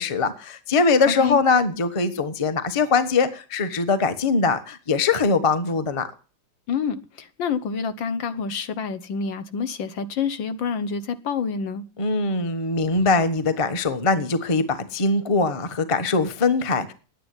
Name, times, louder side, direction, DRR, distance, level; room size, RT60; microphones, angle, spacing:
voice 1, 0.0-6.1 12.0-16.9, left 4 dB, 20° left, 0.8 m, -22 dB
voice 2, 1.1-1.4 6.7-11.8, left 6 dB, 65° left, 1.6 m, -27 dB
11.0 x 9.4 x 9.7 m
omnidirectional pair, 2.4 m